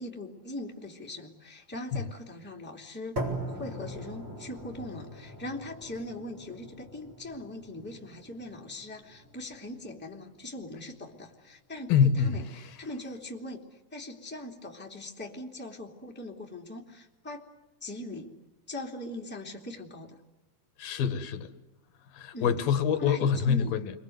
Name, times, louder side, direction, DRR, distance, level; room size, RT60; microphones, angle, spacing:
voice 1, 0.0-3.2 3.5-13.6 13.9-17.5 17.8-18.3 18.7-20.2 22.3-22.6 23.0-23.7, left 1 dB, 5° left, 2.4 m, -41 dB
sound 1, 3.2-11.2, right 1 dB, 35° right, 4.9 m, -41 dB
voice 2, 11.9-12.4 20.8-21.5 22.1-23.9, left 7 dB, 80° left, 3.2 m, -25 dB
29.5 x 23.5 x 8.0 m
omnidirectional pair, 4.1 m